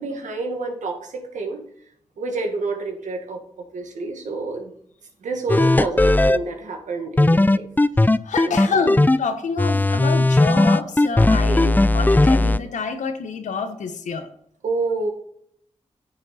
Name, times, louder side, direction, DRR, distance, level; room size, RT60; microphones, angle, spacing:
voice 1, 0.0-1.6 2.2-4.7 5.2-7.7 8.4-8.8 11.4-11.8 14.6-15.1, right 3 dB, 90° right, 3 dB, 1.8 m, -29 dB
sound 1, 5.5-6.4 7.2-9.2 9.6-12.6, left 2 dB, 15° left, 0.5 m, -16 dB
voice 2, 8.2-14.3, left 5 dB, 85° left, 8 dB, 1.1 m, -27 dB
9.6 x 6.4 x 4.2 m, 0.66 s
cardioid pair, 45°, 12 cm